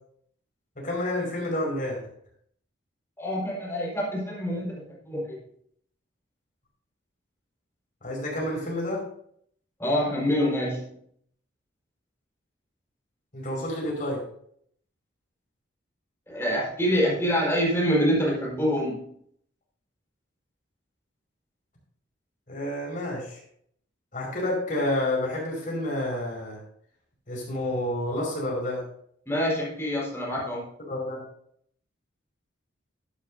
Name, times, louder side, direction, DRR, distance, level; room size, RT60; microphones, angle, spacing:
voice 1, 0.8-2.0 8.0-9.0 13.3-14.2 22.5-23.4 24.1-26.6 27.3-28.8 30.8-31.2, left 1 dB, 45° left, -2 dB, 5.3 m, -29 dB
voice 2, 3.2-5.4 9.8-10.8 16.3-19.0 29.3-30.7, equal, 15° left, -4 dB, 4.6 m, -26 dB
12.5 x 11.0 x 2.7 m, 0.65 s
head